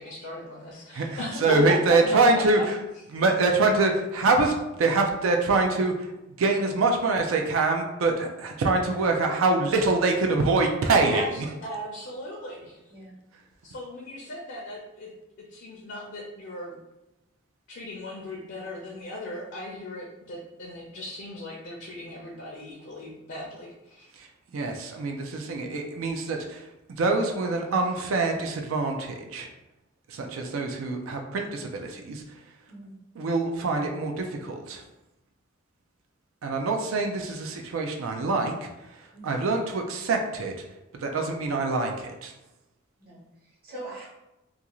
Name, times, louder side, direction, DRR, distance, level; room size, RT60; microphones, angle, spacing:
voice 1, 0.0-1.7 2.1-2.4 3.1-3.2 11.1-12.8 13.6-15.1 15.5-16.8 17.7-24.1, left 1 dB, 60° left, -3 dB, 0.5 m, -38 dB
voice 2, 0.9-2.6 3.1-6.1 6.4-11.5 24.2-24.3 24.5-26.6 26.9-29.5 30.1-32.2 33.2-34.8 36.4-38.7 39.2-40.5 40.9-42.3, right 3 dB, 80° right, 3 dB, 0.4 m, -25 dB
voice 3, 43.0-44.1, right 2 dB, 45° right, -6 dB, 1.0 m, -43 dB
2.4 x 2.3 x 2.9 m, 0.96 s
head